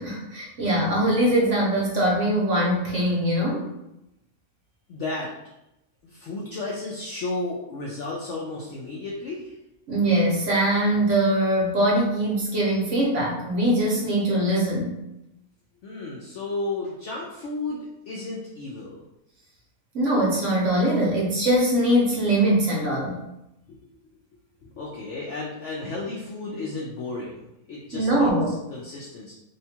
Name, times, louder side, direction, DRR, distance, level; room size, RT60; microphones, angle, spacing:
voice 1, 0.0-3.6 9.9-14.9 19.9-23.2 27.9-28.5, right 1 dB, 60° right, -4 dB, 1.0 m, -22 dB
voice 2, 4.9-5.3 6.0-9.6 15.8-19.0 23.7-23.8 24.6-27.4 27.7-28.3 28.7-29.3, left 2 dB, 65° left, -4 dB, 0.7 m, -33 dB
2.8 x 2.2 x 2.8 m, 0.88 s
omnidirectional pair, 1.6 m